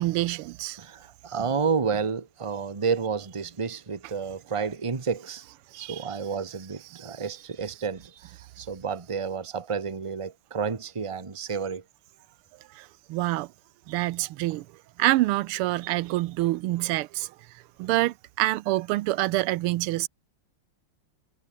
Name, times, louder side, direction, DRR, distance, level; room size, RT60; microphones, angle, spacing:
voice 1, 0.0-0.8 5.7-6.1 6.9-7.2 12.7-13.5 13.9-14.7 15.0-20.1, right 17 dB, 85° right, 1.5 m, -27 dB
voice 2, 0.8-5.4 5.8-11.8, right 5 dB, 20° right, 1.0 m, -30 dB
omnidirectional pair, 2.4 m